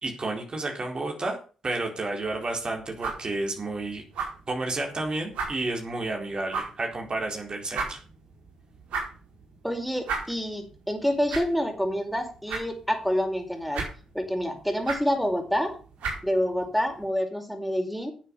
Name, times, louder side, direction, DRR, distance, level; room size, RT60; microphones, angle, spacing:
voice 1, 0.0-1.4 1.6-4.0 4.5-8.0, right 2 dB, 45° right, 2 dB, 4.3 m, -31 dB
sound 1, 2.2-17.1, right 4 dB, 75° right, 4.7 m, -38 dB
voice 2, 9.6-13.8 14.1-15.7 16.2-18.1, equal, ahead, 4 dB, 4.9 m, -27 dB
11.5 x 7.4 x 7.1 m, 0.37 s
hypercardioid pair, 40°, 2 cm